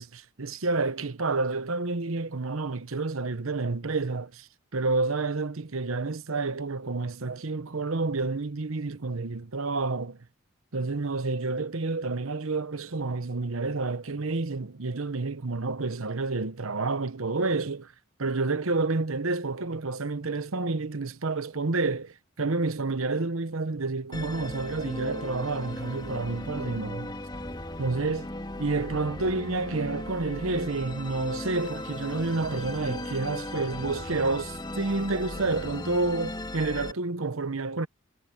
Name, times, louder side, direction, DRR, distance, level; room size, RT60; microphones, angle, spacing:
voice 1, 0.0-4.5 4.7-10.2 10.7-17.9 18.2-27.2 27.8-28.3 28.6-37.9, right 3 dB, 85° right, 1.0 m, -29 dB
Musical instrument, 24.1-36.9, left 1 dB, 20° left, 2.9 m, -37 dB
head